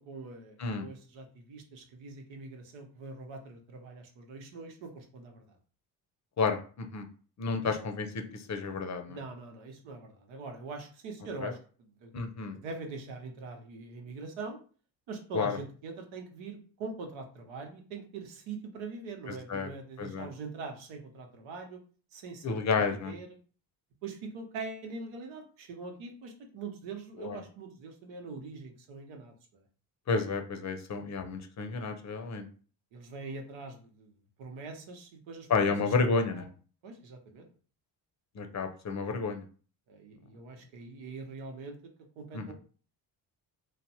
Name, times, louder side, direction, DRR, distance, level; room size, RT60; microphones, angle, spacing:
voice 1, 0.0-5.4 7.6-7.7 9.1-11.6 12.0-12.1 12.5-14.6 15.1-21.8 22.1-23.3 24.0-29.6 32.9-34.1 34.4-36.5 36.8-37.5 39.9-42.5, right 3 dB, 75° right, 4 dB, 0.9 m, -43 dB
voice 2, 6.4-7.0 7.4-9.2 11.4-11.5 12.1-12.5 15.3-15.6 19.5-19.7 20.0-20.3 22.4-23.1 27.2-27.4 30.1-32.5 35.5-36.5 38.4-39.4 42.3-42.5, left 4 dB, 35° left, 6 dB, 0.6 m, -31 dB
3.2 x 2.0 x 2.8 m, 0.40 s
supercardioid pair, 70°, 46 cm